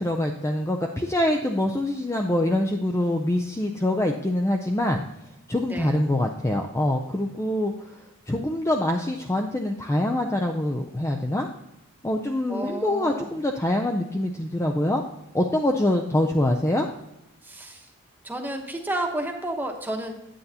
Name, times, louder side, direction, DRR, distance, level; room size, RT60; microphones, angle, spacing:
voice 1, 0.0-5.0 5.5-7.9 8.3-11.5 12.0-15.0 15.3-16.9, left 1 dB, 15° left, 3 dB, 0.4 m, -24 dB
voice 2, 12.5-13.3 17.4-17.9 18.2-20.1, right 1 dB, 10° right, 2 dB, 1.0 m, -31 dB
9.3 x 8.9 x 2.8 m, 0.89 s
head